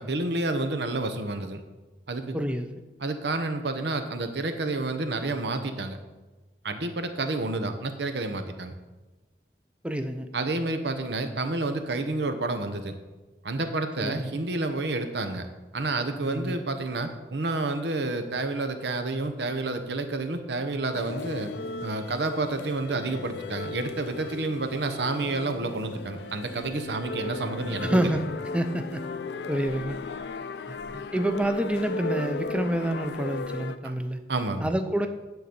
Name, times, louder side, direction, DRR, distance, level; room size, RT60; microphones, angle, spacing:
voice 1, 0.0-1.6 2.1-2.3 3.0-6.0 6.6-8.8 10.3-13.0 13.4-15.5 15.7-21.5 21.8-28.0 30.7-31.0 33.8-33.9 34.3-34.7, right 2 dB, 80° right, 7 dB, 0.9 m, -29 dB
voice 2, 2.3-2.7 9.8-10.3 14.0-14.4 16.2-16.6 27.8-28.3 28.5-29.0 29.5-30.0 31.1-34.2 34.6-35.1, right 1 dB, 5° right, 7 dB, 0.5 m, -27 dB
sound 1, 20.9-33.8, left 3 dB, 80° left, 0.4 m, -36 dB
10.5 x 3.9 x 6.8 m, 1.2 s
head